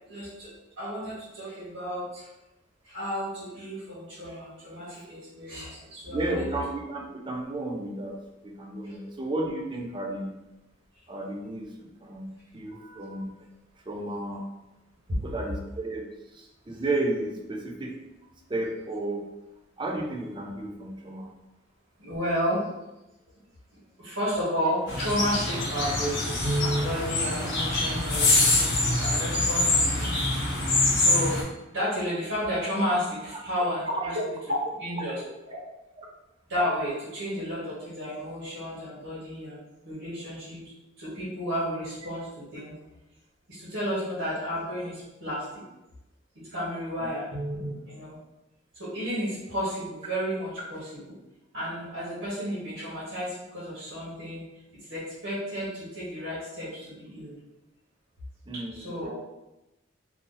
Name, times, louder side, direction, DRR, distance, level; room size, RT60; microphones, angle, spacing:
voice 1, 0.1-2.3 2.8-6.4 8.8-8.9 22.0-22.6 24.0-30.2 31.0-31.4 31.7-34.5 34.8-35.6 36.5-39.6 39.8-40.6 41.0-42.7 43.5-45.5 46.3-48.2 48.7-51.1 51.5-54.4 54.8-57.3 58.5-59.1, equal, 75° right, -9 dB, 1.3 m, -32 dB
voice 2, 6.1-8.1 8.4-10.3 11.1-13.3 13.9-14.4 15.2-16.0 16.3-17.9 18.5-19.2 19.8-21.3 33.9-34.1 36.0-36.1 47.0-47.1 58.5-58.9, right 2 dB, 25° right, 1 dB, 0.5 m, -33 dB
sound 1, 24.9-31.4, left 2 dB, 60° left, 1.0 m, -25 dB
2.7 x 2.7 x 3.8 m, 0.97 s
head